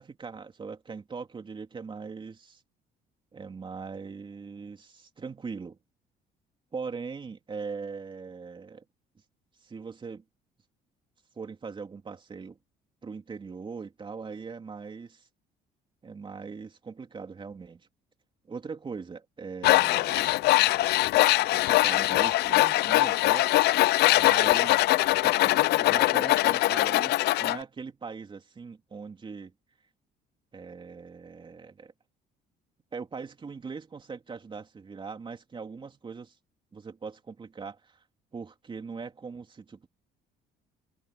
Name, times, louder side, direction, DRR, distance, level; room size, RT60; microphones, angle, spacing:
voice 1, 0.0-2.6 3.3-5.8 6.7-8.8 9.6-10.2 11.4-12.6 13.0-15.3 16.0-17.8 18.5-20.3 21.5-23.8 24.1-24.8 25.2-29.5 30.5-31.9 32.9-36.4 36.7-38.0 38.3-39.9, right 5 dB, 30° right, 3.1 m, -40 dB
Tools, 19.6-27.6, left 18 dB, 75° left, 0.6 m, -22 dB
cardioid pair, 110°, 17 cm